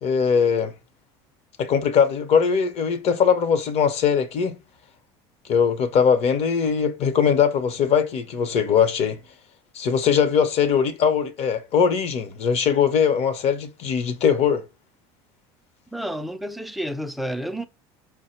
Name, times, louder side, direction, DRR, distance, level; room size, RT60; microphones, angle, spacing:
voice 1, 0.0-0.7 1.6-4.6 5.5-9.2 9.7-14.6, left 7 dB, 50° left, 0.8 m, -21 dB
voice 2, 15.9-17.7, equal, ahead, 0.4 m, -30 dB
4.9 x 2.2 x 4.3 m
supercardioid pair, 105°, 14 cm